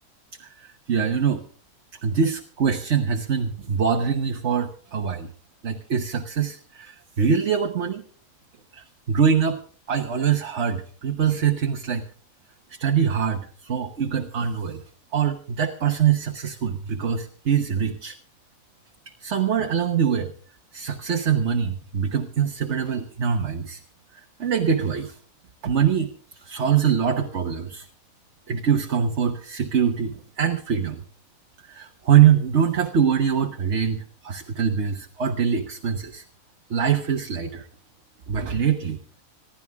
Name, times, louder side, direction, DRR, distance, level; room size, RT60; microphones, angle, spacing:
voice 1, 0.4-1.4 2.0-5.3 5.6-8.0 8.7-9.6 9.9-12.0 12.7-14.8 15.1-18.2 19.2-20.3 20.7-23.8 24.1-25.2 25.6-27.9 28.5-31.0 31.6-36.2 36.7-37.7 38.3-39.0, right 7 dB, 55° right, 4 dB, 1.4 m, -23 dB
26.5 x 11.5 x 3.6 m, 0.43 s
omnidirectional pair, 1.4 m